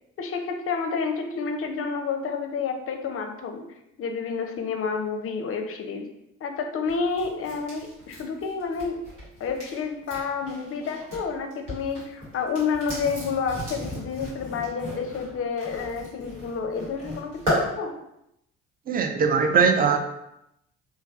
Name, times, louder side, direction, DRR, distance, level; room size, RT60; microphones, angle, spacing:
voice 1, 0.2-3.6 4.0-6.0 6.4-9.0 9.4-17.9, left 5 dB, 40° left, 5 dB, 0.5 m, -29 dB
sound 1, 6.9-11.2 11.5-17.6, equal, 85° right, 1.2 m, -35 dB
voice 2, 18.9-20.0, right 5 dB, 25° right, 6 dB, 0.4 m, -20 dB
3.2 x 2.2 x 2.4 m, 0.83 s
hypercardioid pair, 50°, 37 cm